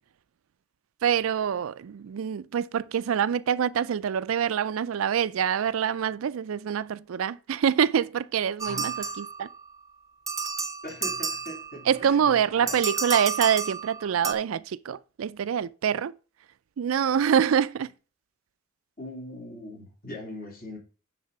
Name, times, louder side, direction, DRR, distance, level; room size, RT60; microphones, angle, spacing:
voice 1, 1.0-9.5 11.9-16.1 16.8-17.9, right 8 dB, 90° right, 0.4 m, -25 dB
voice 2, 8.6-9.2 10.8-12.8 19.0-20.8, left 1 dB, 45° left, 3.5 m, -41 dB
sound 1, 8.6-9.7 10.3-11.9 12.7-14.3, right 5 dB, 15° right, 0.7 m, -31 dB
9.4 x 4.1 x 5.4 m
head